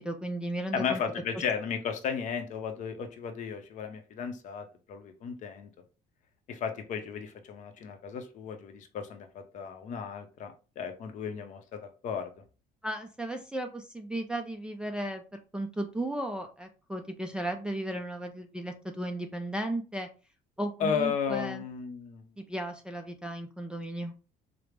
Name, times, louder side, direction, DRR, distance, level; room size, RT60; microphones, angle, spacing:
voice 1, 0.0-1.0 1.3-1.4 12.8-20.1 20.6-21.6 22.4-24.1, right 1 dB, 5° right, 3 dB, 0.3 m, -35 dB
voice 2, 0.7-5.7 6.5-12.3 20.8-22.4, left 7 dB, 50° left, 6 dB, 0.6 m, -34 dB
4.9 x 2.0 x 3.2 m, 0.33 s
cardioid pair, 165°, 16 cm